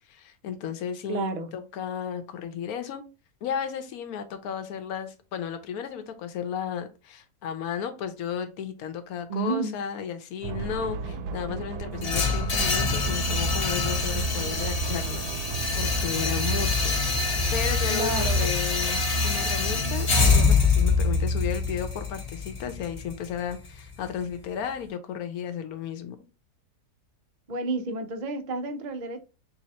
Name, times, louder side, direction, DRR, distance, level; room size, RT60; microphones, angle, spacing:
voice 1, 0.1-3.0 3.4-16.9 17.5-26.2, left 8 dB, 70° left, 1.2 m, -34 dB
voice 2, 1.1-1.5 9.3-9.8 17.9-18.5 27.5-29.2, right 3 dB, 60° right, 0.4 m, -30 dB
sound 1, 10.4-17.6, right 6 dB, 80° right, 1.1 m, -35 dB
sound 2, 12.0-24.1, left 4 dB, 30° left, 0.7 m, -25 dB
3.7 x 2.9 x 4.2 m
omnidirectional pair, 1.7 m